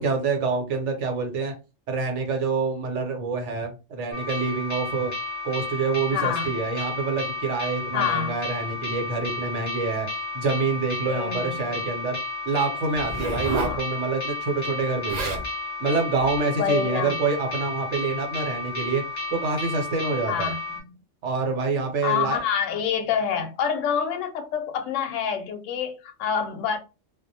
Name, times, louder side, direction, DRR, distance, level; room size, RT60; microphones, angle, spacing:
voice 1, 0.0-1.5 1.9-5.1 5.4-10.1 10.3-12.2 12.5-15.4 15.8-19.0 19.3-20.5 21.2-22.4, right 4 dB, 70° right, 1.0 m, -26 dB
sound 1, 4.1-20.8, left 3 dB, 15° left, 0.8 m, -32 dB
voice 2, 6.1-6.5 7.9-8.3 11.1-11.7 13.4-13.8 16.6-17.2 20.3-20.6 22.0-26.8, left 7 dB, 75° left, 0.9 m, -27 dB
Zipper (clothing), 12.9-13.8 14.8-14.9 15.1-15.5 16.2-16.4, right 1 dB, 50° right, 0.5 m, -30 dB
2.3 x 2.0 x 2.7 m
omnidirectional pair, 1.3 m